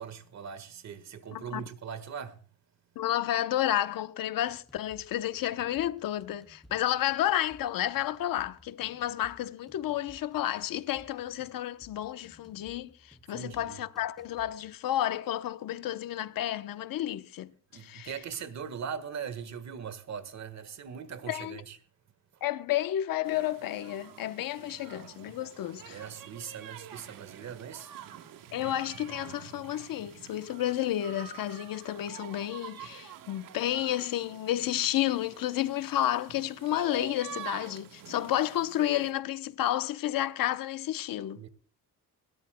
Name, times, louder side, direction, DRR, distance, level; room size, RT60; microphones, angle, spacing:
voice 1, 0.0-2.4 5.6-5.9 6.7-6.9 13.3-13.8 17.7-21.8 24.7-24.8 25.9-27.9 41.3-41.5, right 7 dB, 55° right, 1.6 m, -40 dB
voice 2, 1.3-1.6 3.0-17.5 17.8-18.1 21.3-21.6 22.4-26.0 28.5-41.4, left 12 dB, 80° left, 0.9 m, -31 dB
sound 1, 4.4-14.8, left 1 dB, ahead, 3.3 m, -59 dB
sound 2, 23.2-39.1, right 10 dB, 75° right, 1.4 m, -47 dB
20.5 x 17.5 x 2.2 m
cardioid pair, 160°, 33 cm